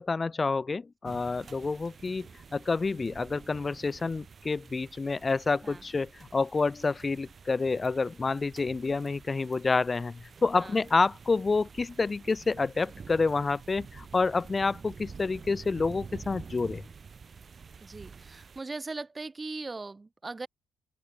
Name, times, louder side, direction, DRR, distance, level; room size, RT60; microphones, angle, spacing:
voice 1, 0.0-16.8, left 4 dB, 30° left, 0.5 m, -28 dB
sound 1, 1.0-18.6, right 5 dB, 40° right, 5.0 m, -49 dB
voice 2, 17.8-20.5, right 3 dB, 25° right, 0.9 m, -39 dB
open air
cardioid pair, 90°, 0 cm